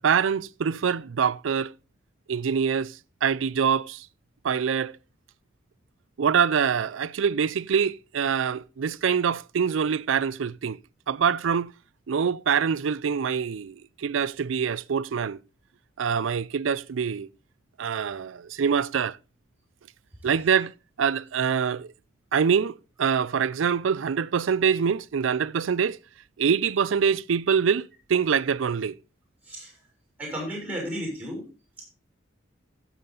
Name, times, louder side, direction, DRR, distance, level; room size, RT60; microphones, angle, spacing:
voice 1, 0.0-1.7 2.3-4.1 4.4-5.0 6.2-10.8 11.1-11.7 12.1-15.4 16.0-17.3 17.8-19.2 20.2-20.7 21.0-21.9 22.3-26.0 26.4-29.0, right 7 dB, 90° right, 0.4 m, -25 dB
voice 2, 30.2-31.5, equal, 10° right, 6.0 m, -33 dB
15.5 x 7.2 x 3.9 m
head